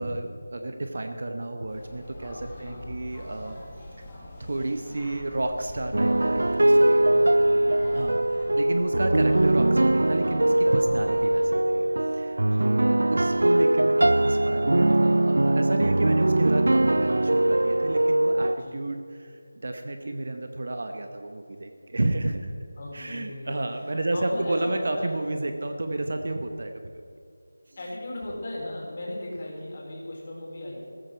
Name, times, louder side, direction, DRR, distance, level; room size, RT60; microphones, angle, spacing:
voice 1, 0.0-3.6 4.4-7.0 7.9-22.5 22.9-26.7 27.7-27.8, right 2 dB, 55° right, 6 dB, 1.0 m, -31 dB
sound 1, 1.7-11.5, left 1 dB, 15° left, 2.2 m, -44 dB
voice 2, 2.4-2.7 7.1-8.2 12.5-12.7 18.6-18.7 22.8-25.2 25.5-25.6 27.8-30.9, left 1 dB, 35° left, -3 dB, 4.1 m, -37 dB
sound 2, 5.9-18.6, right 1 dB, 75° right, 0.4 m, -21 dB
15.0 x 14.5 x 4.5 m, 2.5 s
figure-of-eight pair, 175°, 0 cm